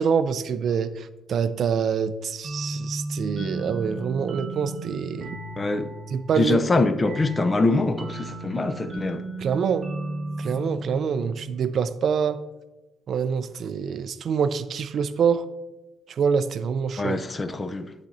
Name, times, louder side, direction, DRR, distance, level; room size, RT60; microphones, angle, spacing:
voice 1, 0.0-5.4 6.1-6.6 9.4-9.9 10.4-12.4 13.1-15.5 16.1-17.2, right 6 dB, 60° right, 0.4 m, -25 dB
sound 1, 2.4-11.8, right 2 dB, 40° right, 1.4 m, -35 dB
voice 2, 5.6-5.9 6.3-9.2 17.0-17.9, left 2 dB, 30° left, 0.5 m, -24 dB
11.5 x 4.1 x 2.6 m
cardioid pair, 90°, 0 cm